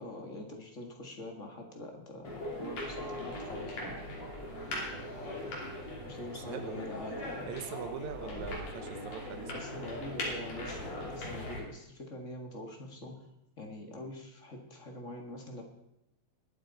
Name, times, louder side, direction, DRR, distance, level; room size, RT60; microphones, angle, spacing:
voice 1, 0.0-3.9 6.0-7.5 8.2-8.4 9.5-13.3 13.6-15.6, left 1 dB, 30° left, 2 dB, 1.7 m, -44 dB
sound 1, 2.2-11.6, left 1 dB, 65° left, 4.2 m, -40 dB
voice 2, 6.3-7.0 7.5-9.6, right 7 dB, 80° right, 9 dB, 2.4 m, -42 dB
21.5 x 8.2 x 4.1 m, 0.83 s
omnidirectional pair, 3.3 m